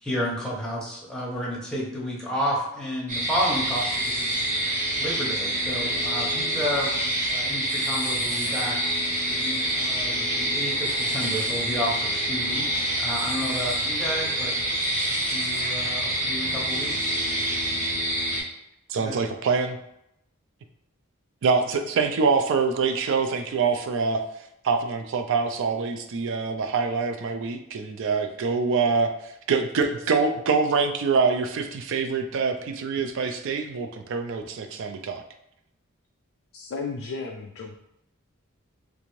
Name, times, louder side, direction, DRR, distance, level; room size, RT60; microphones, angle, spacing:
voice 1, 0.0-4.6 4.9-8.8 9.3-14.5 15.1-17.1 18.9-19.1, equal, 5° left, -5 dB, 0.8 m, -31 dB
sound 1, 3.1-18.4, right 1 dB, 35° right, 0.9 m, -26 dB
voice 2, 18.9-19.8 21.4-24.2 24.6-29.1 29.5-35.2, right 5 dB, 60° right, 7 dB, 0.4 m, -25 dB
voice 3, 36.5-37.8, left 4 dB, 65° left, 2 dB, 0.3 m, -34 dB
3.3 x 2.6 x 3.1 m, 0.79 s
head